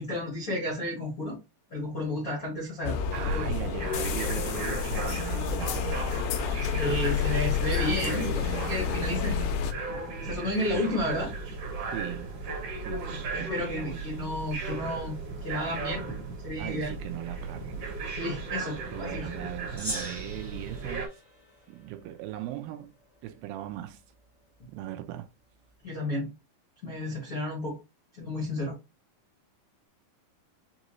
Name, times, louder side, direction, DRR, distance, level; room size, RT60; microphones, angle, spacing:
voice 1, 0.0-1.4 1.7-3.0 3.3-3.5 6.6-9.4 10.2-11.3 13.3-16.1 16.4-16.9 18.1-19.3 25.8-26.3 26.8-27.8 28.1-28.8, left 1 dB, 75° left, 0.8 m, -32 dB
sound 1, 2.8-9.7, left 7 dB, 90° left, 2.6 m, -29 dB
sound 2, 3.1-21.1, right 3 dB, 55° right, 2.0 m, -36 dB
voice 2, 3.1-6.2 8.0-9.6 10.7-11.2 11.9-12.4 12.8-14.3 16.6-17.9 18.7-21.2 21.7-22.9 23.2-24.0 24.7-25.3, right 13 dB, 80° right, 2.3 m, -39 dB
Gong, 19.8-22.4, equal, 15° right, 0.4 m, -40 dB
6.1 x 2.6 x 3.0 m
omnidirectional pair, 4.3 m